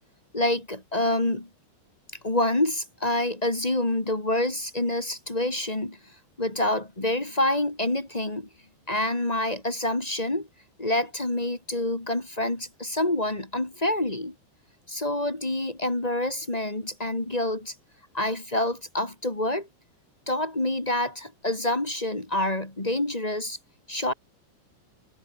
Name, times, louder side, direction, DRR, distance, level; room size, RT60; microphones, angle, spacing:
voice 1, 0.3-1.5 2.2-6.0 6.4-8.5 8.9-10.5 10.8-14.3 14.9-17.7 18.1-19.7 20.2-23.6 23.9-24.1, left 1 dB, 20° left, 0.9 m, -27 dB
omnidirectional pair, 5.8 m